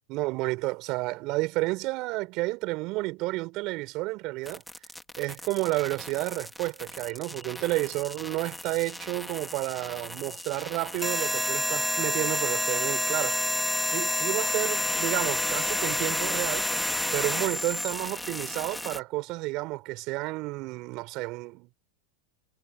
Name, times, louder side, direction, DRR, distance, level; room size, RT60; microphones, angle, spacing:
voice 1, 0.1-4.6 5.2-13.4 13.8-16.7 17.1-21.7, right 22 dB, 50° right, 4.8 m, -31 dB
sound 1, 4.5-19.0, left 1 dB, 5° left, 2.3 m, -30 dB
hypercardioid pair, 100°, 0 cm